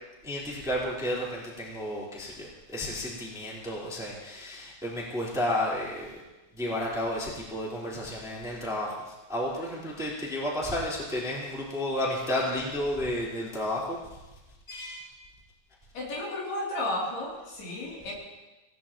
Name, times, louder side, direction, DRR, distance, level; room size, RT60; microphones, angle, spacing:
voice 1, 0.2-6.2 6.5-14.0 14.7-15.0, left 1 dB, ahead, -5 dB, 2.8 m, -32 dB
voice 2, 15.9-18.1, left 1 dB, 55° left, -4 dB, 4.8 m, -33 dB
26.5 x 18.0 x 3.0 m, 1.1 s
omnidirectional pair, 5.7 m